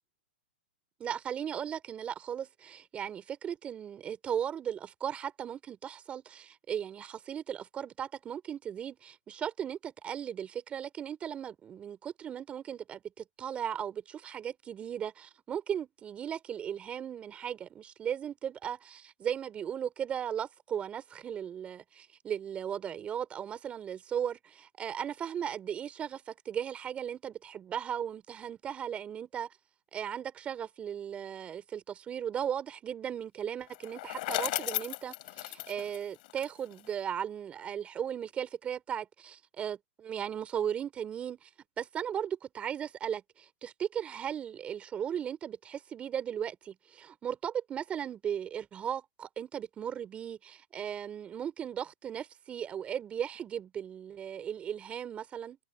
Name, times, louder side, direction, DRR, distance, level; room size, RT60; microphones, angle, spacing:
voice 1, 1.0-29.5 29.9-41.5 41.8-55.6, right 9 dB, 20° right, 3.7 m, -37 dB
Bicycle, 33.7-36.9, left 20 dB, 50° left, 5.1 m, -36 dB
hypercardioid pair, 135°, 6 cm